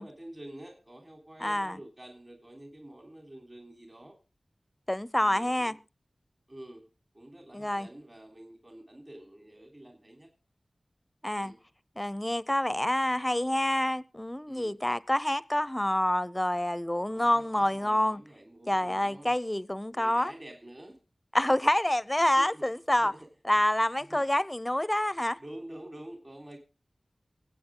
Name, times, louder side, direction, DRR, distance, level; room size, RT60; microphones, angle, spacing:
voice 1, 0.0-4.2 5.2-5.7 6.5-6.9 7.1-10.3 11.4-11.6 14.5-14.7 17.1-19.4 19.9-21.0 22.4-22.6 23.0-23.3 24.0-24.2 25.4-26.6, right 1 dB, 30° right, 3.5 m, -48 dB
voice 2, 1.4-1.8 4.9-5.7 7.5-7.9 11.2-11.5 12.0-18.2 18.7-20.3 21.3-23.1 23.5-25.4, left 1 dB, 15° left, 0.6 m, -27 dB
23.5 x 8.6 x 3.7 m
wide cardioid pair, 65°, 0 cm